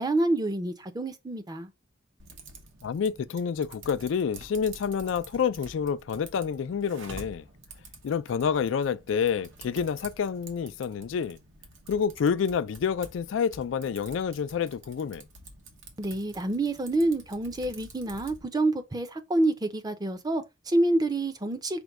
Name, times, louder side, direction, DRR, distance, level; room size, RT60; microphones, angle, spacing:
voice 1, 0.0-1.7 16.0-21.8, right 2 dB, 20° right, 0.6 m, -27 dB
Typing, 2.2-18.4, right 2 dB, 80° right, 1.2 m, -49 dB
voice 2, 2.8-7.4 8.0-11.4 11.9-15.2, left 6 dB, 80° left, 0.3 m, -28 dB
5.1 x 2.2 x 4.6 m
head